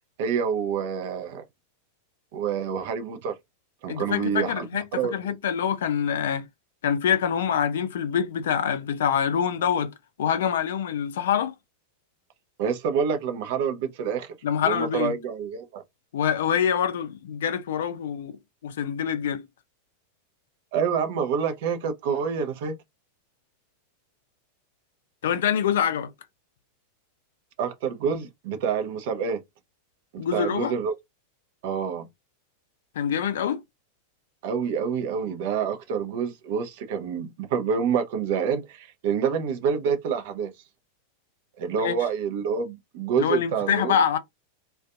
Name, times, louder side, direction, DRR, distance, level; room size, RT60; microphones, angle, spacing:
voice 1, 0.2-1.4 2.3-3.3 3.8-4.7 4.9-5.3 12.6-14.3 14.6-15.8 20.7-22.7 27.6-29.4 30.1-30.9 31.6-32.1 34.4-40.5 41.6-44.0, right 6 dB, 50° right, 0.5 m, -27 dB
voice 2, 3.9-6.4 6.8-9.9 10.2-11.5 14.4-15.1 16.1-18.3 18.6-19.4 25.2-26.1 30.2-30.7 33.0-33.6 41.7-41.9 43.2-44.2, left 8 dB, 60° left, 0.4 m, -25 dB
2.5 x 2.2 x 2.4 m
figure-of-eight pair, 90°, 0 cm